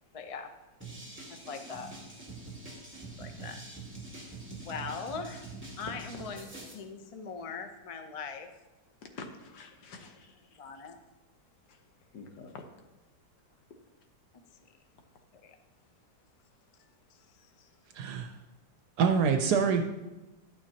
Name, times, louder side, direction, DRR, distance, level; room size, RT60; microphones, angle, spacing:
voice 1, 0.1-0.5 1.3-1.9 2.7-3.6 4.5-8.5 10.6-11.0 15.4-15.5 17.1-17.7, left 5 dB, 60° left, 6 dB, 0.3 m, -41 dB
sound 1, 0.8-6.7, right 3 dB, 5° right, 1.8 m, -45 dB
voice 2, 9.0-10.4 11.7-11.8 12.1-12.7, left 4 dB, 80° left, 4 dB, 1.6 m, -47 dB
voice 3, 17.9-18.4 19.0-19.8, right 6 dB, 75° right, 6 dB, 1.2 m, -25 dB
11.0 x 8.9 x 2.8 m, 1.1 s
omnidirectional pair, 1.8 m